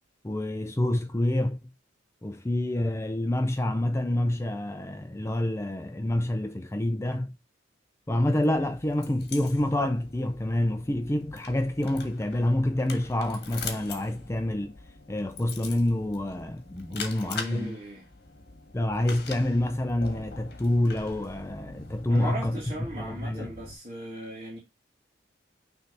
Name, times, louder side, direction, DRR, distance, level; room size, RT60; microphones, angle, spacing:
voice 1, 0.2-1.6 2.2-7.3 8.1-14.7 15.1-17.7 18.7-22.6 23.0-23.5, left 1 dB, 15° left, 0.4 m, -27 dB
sound 1, 8.4-23.7, left 4 dB, 55° left, 1.5 m, -43 dB
voice 2, 16.9-18.1 22.1-24.6, right 1 dB, 35° right, 1.9 m, -38 dB
6.4 x 3.3 x 5.3 m
head